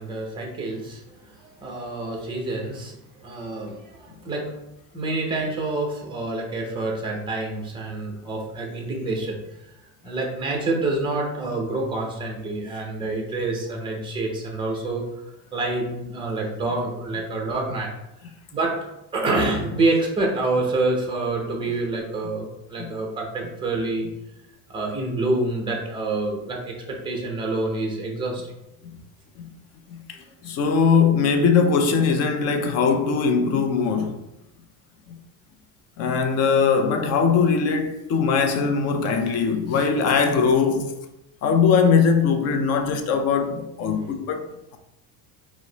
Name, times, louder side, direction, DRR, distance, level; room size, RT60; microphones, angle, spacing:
voice 1, 0.0-3.0 3.2-4.5 4.9-9.4 10.0-15.0 15.5-17.9 18.5-18.8 19.1-24.1 24.7-28.5, right 2 dB, 10° right, 0.6 m, -27 dB
voice 2, 29.9-34.2 35.1-35.2 36.0-40.9 41.4-44.8, left 5 dB, 40° left, 0.4 m, -21 dB
4.6 x 2.0 x 3.8 m
cardioid pair, 160°, 43 cm